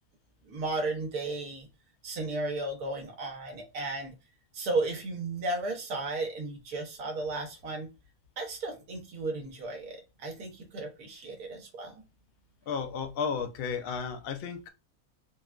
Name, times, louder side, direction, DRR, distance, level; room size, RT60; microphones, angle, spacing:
voice 1, 0.5-1.7 2.0-4.1 4.5-7.9 8.4-12.0, right 2 dB, 85° right, 1.3 m, -34 dB
voice 2, 12.7-14.7, left 6 dB, 70° left, 0.5 m, -33 dB
3.6 x 2.2 x 2.3 m
omnidirectional pair, 1.5 m